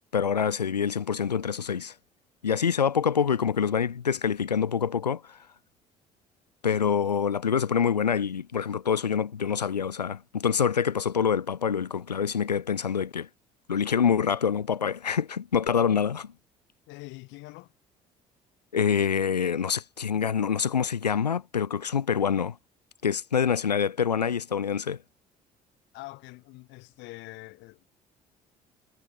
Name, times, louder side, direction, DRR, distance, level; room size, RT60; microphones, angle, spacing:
voice 1, 0.1-1.9 2.4-5.4 6.6-13.3 13.7-16.3 18.7-22.6 23.0-25.0, left 7 dB, 85° left, 2.3 m, -26 dB
voice 2, 16.9-17.7 25.9-27.9, left 23 dB, 65° left, 6.1 m, -44 dB
figure-of-eight pair, 55°, 20 cm